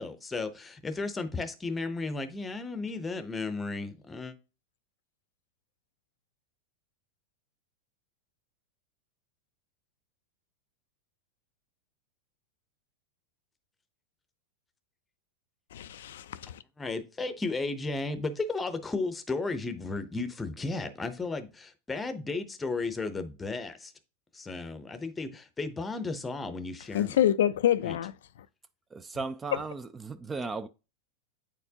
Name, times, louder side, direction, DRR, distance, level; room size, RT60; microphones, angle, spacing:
voice 1, 0.0-4.3 16.8-23.9 24.3-27.2 27.8-28.0, left 3 dB, 10° left, 0.7 m, -34 dB
voice 2, 15.7-16.6 26.9-28.1 29.5-29.6, left 11 dB, 85° left, 0.4 m, -26 dB
voice 3, 28.9-30.7, right 4 dB, 15° right, 0.3 m, -36 dB
8.7 x 4.4 x 2.8 m
supercardioid pair, 150°, 0 cm